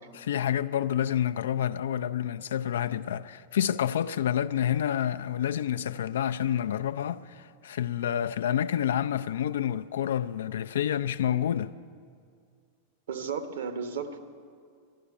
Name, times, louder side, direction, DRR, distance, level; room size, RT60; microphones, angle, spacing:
voice 1, 0.1-11.7, left 10 dB, 60° left, 0.4 m, -28 dB
voice 2, 13.1-14.2, right 6 dB, 60° right, 1.0 m, -34 dB
11.5 x 11.0 x 9.7 m
figure-of-eight pair, 90°, 0 cm